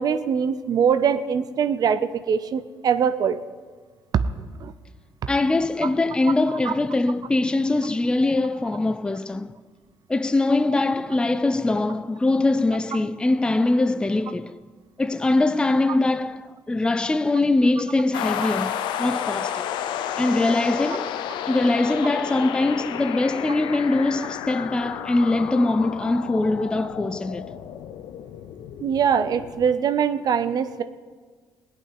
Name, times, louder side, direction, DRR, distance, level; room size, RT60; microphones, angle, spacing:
voice 1, 0.0-3.4 4.1-4.2 4.6-4.7 6.7-6.8 18.4-18.5 28.8-30.8, right 7 dB, 55° right, 0.6 m, -22 dB
voice 2, 5.3-9.5 10.1-14.6 15.0-19.7 20.2-21.1 21.5-27.5, left 2 dB, 10° left, 0.4 m, -22 dB
sound 1, 18.1-29.7, left 10 dB, 85° left, 0.6 m, -31 dB
17.0 x 5.8 x 9.7 m
cardioid pair, 100°, 8 cm